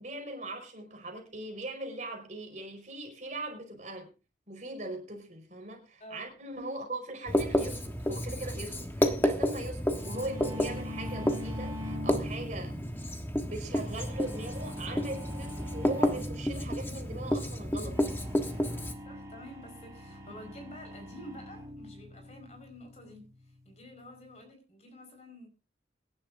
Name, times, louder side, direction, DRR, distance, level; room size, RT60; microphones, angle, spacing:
voice 1, 0.0-4.1 4.5-12.7 13.4-18.0 20.3-20.4, right 1 dB, 40° right, 5.0 m, -40 dB
voice 2, 6.0-6.3 19.0-23.3 23.6-25.5, left 1 dB, 35° left, 5.0 m, -49 dB
Writing, 7.3-18.9, equal, 15° left, 1.3 m, -31 dB
sound 1, 10.0-24.4, left 1 dB, 20° right, 5.1 m, -44 dB
23.5 x 11.5 x 2.6 m
head